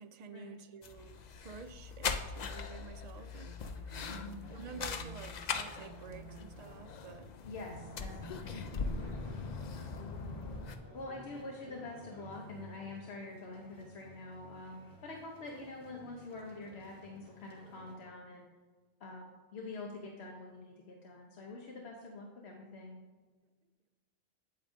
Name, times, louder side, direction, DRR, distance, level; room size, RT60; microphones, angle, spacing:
voice 1, 0.0-3.9 4.5-7.3 9.7-9.9 10.6-10.7, right 6 dB, 50° right, 9 dB, 0.5 m, -50 dB
sound 1, 0.8-10.8, left 5 dB, 55° left, 0.6 m, -41 dB
sound 2, 3.6-7.3 7.6-9.3, right 4 dB, 70° left, 2.5 m, -53 dB
voice 2, 4.1-4.4 7.4-8.6 10.9-18.5 19.0-23.0, left 2 dB, 90° left, 0 dB, 1.1 m, -46 dB
sound 3, 8.6-18.0, equal, 20° left, 1.4 m, -55 dB
8.8 x 8.4 x 2.6 m, 1.4 s
omnidirectional pair, 1.0 m